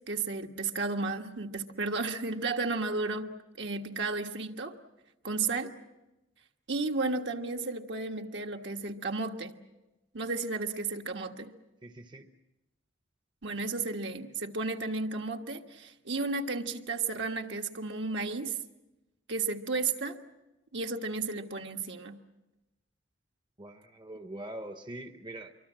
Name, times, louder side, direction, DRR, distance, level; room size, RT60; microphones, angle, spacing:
voice 1, 0.1-3.3 3.6-4.7 5.2-5.7 6.7-9.5 10.1-11.5 13.4-18.6 19.3-20.2 20.7-22.2, right 3 dB, 65° right, 3 dB, 1.5 m, -33 dB
voice 2, 11.8-12.3 23.6-25.5, right 1 dB, 25° right, 8 dB, 0.9 m, -43 dB
26.0 x 23.5 x 7.5 m, 1.0 s
head